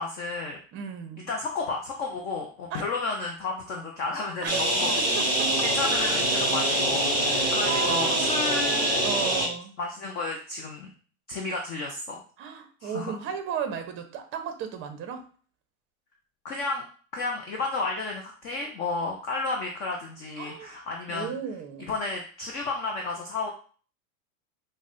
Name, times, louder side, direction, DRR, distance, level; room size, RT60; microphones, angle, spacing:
voice 1, 0.0-0.6 1.3-4.9 5.6-9.1 9.8-10.9 11.3-12.2 12.8-13.1 16.4-16.8 17.1-21.3 21.9-23.5, left 3 dB, 25° left, 1 dB, 0.3 m, -32 dB
voice 2, 0.7-1.3 2.7-2.9 4.4-5.6 7.2-8.3 9.0-9.8 12.4-15.2 20.4-20.7 21.1-21.9, right 7 dB, 30° right, 7 dB, 0.6 m, -35 dB
sound 1, 4.5-9.5, right 1 dB, 10° right, 1.4 m, -24 dB
5.1 x 2.1 x 2.4 m, 0.42 s
hypercardioid pair, 115°, 43 cm